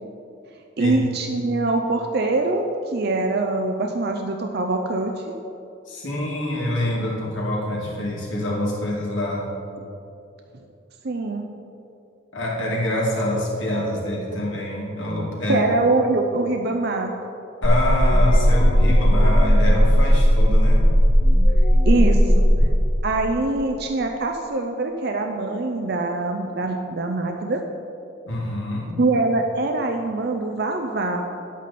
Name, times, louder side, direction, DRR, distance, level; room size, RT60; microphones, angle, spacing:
voice 1, 0.8-5.2 11.0-11.5 15.5-17.2 21.9-22.5 23.0-27.6 29.0-31.3, right 2 dB, 55° right, 3 dB, 0.6 m, -23 dB
voice 2, 5.9-9.4 12.3-15.7 17.6-20.8 28.3-28.9, left 1 dB, 75° left, -4 dB, 2.5 m, -25 dB
sound 1, 17.6-22.6, equal, 35° left, 1.2 m, -16 dB
10.5 x 8.3 x 4.2 m, 2.7 s
head